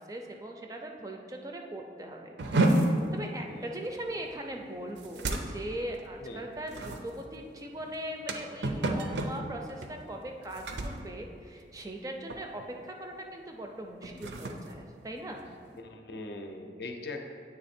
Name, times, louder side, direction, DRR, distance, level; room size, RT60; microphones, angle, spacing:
voice 1, 0.0-15.4, right 1 dB, 20° right, 2 dB, 0.4 m, -40 dB
sound 1, 2.4-12.0 12.3-12.7 13.1-13.3 13.9-15.8, right 1 dB, 70° right, 0.5 m, -32 dB
voice 2, 6.2-6.5 15.8-17.2, left 2 dB, 60° left, 4 dB, 0.6 m, -41 dB
8.7 x 3.2 x 4.3 m, 2.2 s
head